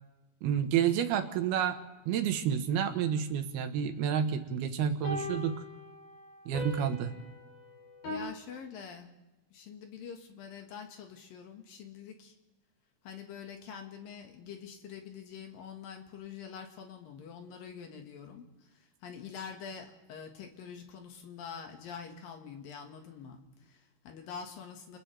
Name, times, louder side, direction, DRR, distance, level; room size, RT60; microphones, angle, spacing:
voice 1, 0.4-1.8 2.1-5.6 6.5-7.1, right 8 dB, 85° right, 7 dB, 3.2 m, -29 dB
sound 1, 0.8-0.9 5.0-8.2, left 2 dB, 90° left, 9.6 m, -41 dB
voice 2, 8.0-9.1 9.5-12.3 13.0-25.0, left 7 dB, 70° left, 3 dB, 3.3 m, -45 dB
29.0 x 29.0 x 3.4 m, 1.0 s
omnidirectional pair, 4.4 m